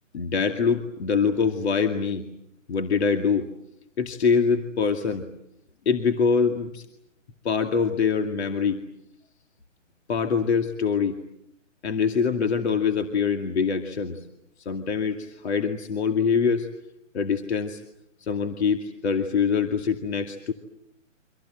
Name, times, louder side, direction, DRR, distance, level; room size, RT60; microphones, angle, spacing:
voice 1, 0.1-2.3 2.7-3.5 4.0-5.3 5.9-6.9 7.4-8.8 10.1-11.2 11.8-14.3 14.6-16.7 17.1-17.8 18.2-20.5, left 6 dB, 55° left, 6 dB, 2.4 m, -24 dB
29.0 x 25.5 x 7.8 m, 0.79 s
hypercardioid pair, 165°, 38 cm